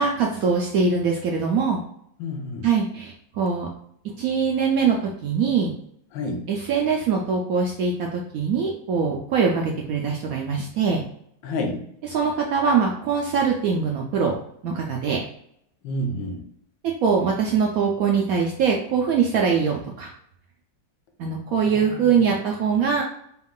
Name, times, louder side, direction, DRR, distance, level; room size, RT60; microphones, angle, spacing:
voice 1, 0.0-1.8 2.6-3.7 4.2-5.7 6.5-11.0 12.1-14.4 14.6-15.2 17.0-20.1 21.2-23.0, right 5 dB, 75° right, 0 dB, 0.8 m, -22 dB
voice 2, 2.2-2.7 6.1-6.5 11.4-11.9 15.8-16.5 21.6-22.4, left 1 dB, 85° left, 3 dB, 1.5 m, -30 dB
4.5 x 2.3 x 3.6 m, 0.70 s
omnidirectional pair, 2.0 m